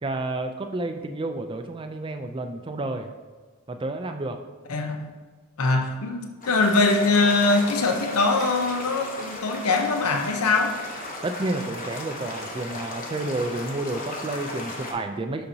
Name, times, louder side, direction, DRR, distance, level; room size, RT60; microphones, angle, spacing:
voice 1, 0.0-3.1 3.7-4.4 11.2-15.4, right 2 dB, 25° right, 6 dB, 0.3 m, -30 dB
voice 2, 4.7-5.1 5.6-10.7, left 3 dB, 85° left, 5 dB, 0.7 m, -22 dB
sound 1, 6.4-14.9, left 2 dB, 40° left, 1.0 m, -36 dB
6.7 x 5.8 x 2.7 m, 1.4 s
head